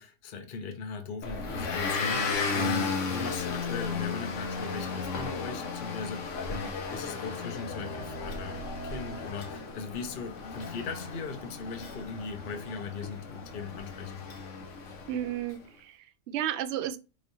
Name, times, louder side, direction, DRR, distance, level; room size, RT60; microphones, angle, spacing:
voice 1, 0.0-14.2, left 5 dB, 45° left, 0.8 m, -39 dB
Motor vehicle (road) / Engine, 1.2-15.4, left 4 dB, 70° left, 1.2 m, -34 dB
voice 2, 15.1-17.0, right 11 dB, 65° right, 0.7 m, -33 dB
4.8 x 3.1 x 2.6 m
omnidirectional pair, 1.4 m